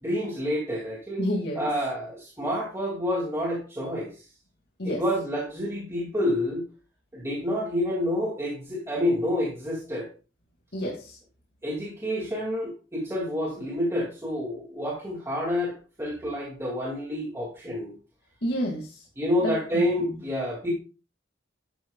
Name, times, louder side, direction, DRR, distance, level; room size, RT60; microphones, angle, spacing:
voice 1, 0.0-1.2 1.6-4.3 4.8-6.6 7.1-10.1 11.6-17.9 19.2-20.7, left 1 dB, 15° right, -3 dB, 2.5 m, -28 dB
voice 2, 1.2-1.7 4.8-5.0 10.7-11.2 18.4-19.1 19.4-20.1, equal, 60° left, -1 dB, 2.3 m, -30 dB
12.5 x 9.5 x 2.4 m, 0.34 s
head